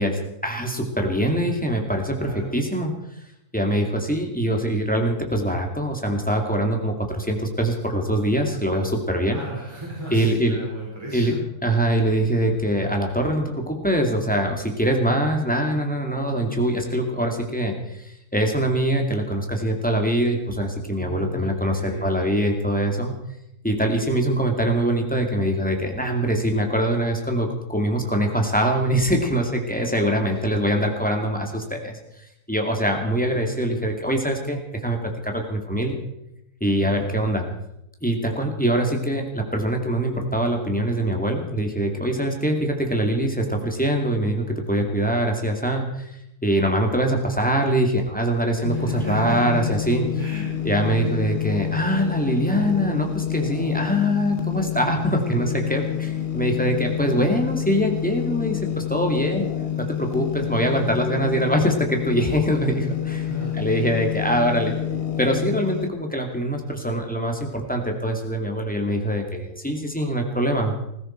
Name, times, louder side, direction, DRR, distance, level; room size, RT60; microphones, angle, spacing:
voice 1, 0.0-2.9 3.5-9.4 10.1-10.6 11.1-11.3 11.6-23.1 23.6-36.0 36.6-37.5 38.0-46.1 46.4-50.1 50.6-59.5 59.8-63.3 63.5-64.8 65.2-70.7, right 1 dB, 5° left, 2 dB, 2.3 m, -23 dB
voice 2, 2.1-2.5 9.3-11.4 20.9-22.0 30.0-30.1 30.4-30.5 48.7-49.4 50.2-50.4 51.0-51.2 63.2-64.0, right 1 dB, 15° right, -6 dB, 5.1 m, -35 dB
sound 1, 48.6-65.9, left 10 dB, 45° left, 1.0 m, -28 dB
20.5 x 15.5 x 4.5 m, 0.82 s
omnidirectional pair, 1.6 m